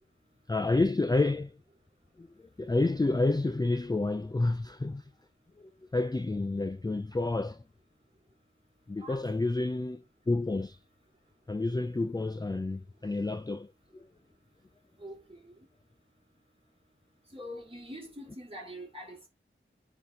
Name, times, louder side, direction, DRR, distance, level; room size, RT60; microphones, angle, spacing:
voice 1, 0.5-1.6 2.2-5.0 5.6-7.6 8.9-10.8 11.5-14.0, left 2 dB, 20° left, 0.4 m, -29 dB
voice 2, 15.0-15.6 17.3-19.3, equal, 25° right, 3.4 m, -44 dB
9.3 x 4.0 x 2.9 m
wide cardioid pair, 55°, 21 cm